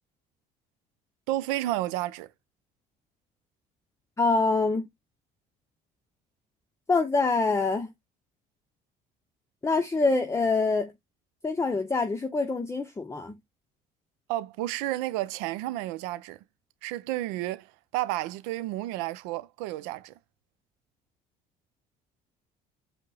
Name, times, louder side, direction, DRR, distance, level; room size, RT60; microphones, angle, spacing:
voice 1, 1.3-2.3 14.3-16.4 16.8-20.1, right 15 dB, 85° right, 0.5 m, -31 dB
voice 2, 4.2-4.8 6.9-7.9 9.6-10.9 11.4-13.4, left 3 dB, 15° left, 0.7 m, -25 dB
5.2 x 2.1 x 3.9 m
supercardioid pair, 80°, 19 cm